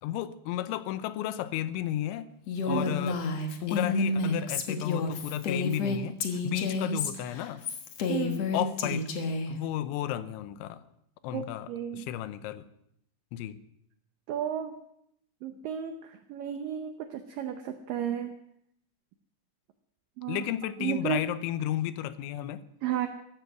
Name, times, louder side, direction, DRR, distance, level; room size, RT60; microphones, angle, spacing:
voice 1, 0.0-2.3 2.6-3.3 3.6-7.6 8.5-9.1 9.5-10.8 11.2-12.6 13.3-13.6 20.3-22.6, left 12 dB, 90° left, 13 dB, 3.3 m, -33 dB
Female speech woman speaking, 2.5-9.5, left 3 dB, 60° left, 1.8 m, -30 dB
voice 2, 8.1-8.5 11.3-12.1 14.3-14.8 15.4-18.3 20.2-20.4 20.8-21.3 22.8-23.1, right 9 dB, 85° right, 7 dB, 1.9 m, -33 dB
15.5 x 15.0 x 6.1 m, 0.74 s
omnidirectional pair, 5.2 m